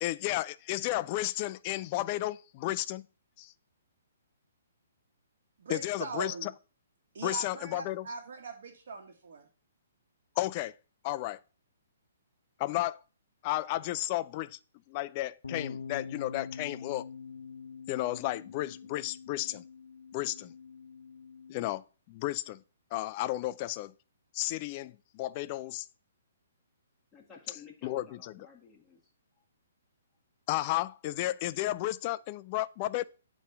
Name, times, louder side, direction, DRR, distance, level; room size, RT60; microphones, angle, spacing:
voice 1, 0.0-3.1 3.4-3.5 5.7-6.5 7.2-8.0 10.4-10.7 11.0-11.4 12.6-13.0 13.4-14.6 14.9-17.1 17.9-19.6 20.1-20.5 21.5-22.6 22.9-23.9 24.3-25.8 27.8-28.3 30.5-33.0, left 16 dB, 35° left, 0.3 m, -33 dB
voice 2, 5.6-6.5 7.1-9.5, right 4 dB, 60° right, 1.3 m, -41 dB
sound 1, 15.4-21.7, left 6 dB, 85° left, 0.7 m, -44 dB
voice 3, 27.1-29.1 29.4-29.5, left 5 dB, 10° left, 1.5 m, -54 dB
8.3 x 3.0 x 5.6 m
hypercardioid pair, 155°, 0 cm